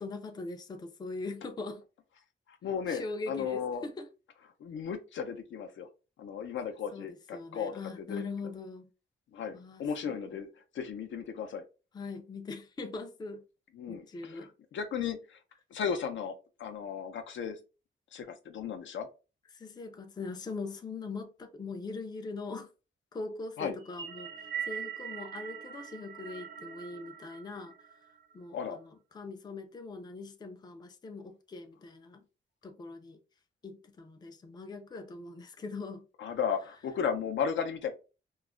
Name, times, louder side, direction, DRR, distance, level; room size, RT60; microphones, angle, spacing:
voice 1, 0.0-1.8 2.9-4.1 6.9-8.9 9.5-9.9 10.3-10.4 11.9-13.4 13.9-14.5 19.5-22.7 23.1-27.7 28.3-32.3 32.6-33.2 33.6-36.1, left 3 dB, 20° left, 0.3 m, -41 dB
voice 2, 2.6-3.8 4.6-5.9 6.2-8.2 9.3-10.5 10.7-11.6 13.8-15.4 15.7-16.3 16.6-17.6 18.1-19.1 23.6-23.7 28.5-28.8 36.2-37.9, left 7 dB, 75° left, 0.5 m, -35 dB
sound 1, 23.8-28.3, right 8 dB, 65° right, 0.7 m, -42 dB
2.3 x 2.0 x 3.5 m
wide cardioid pair, 130°, 20 cm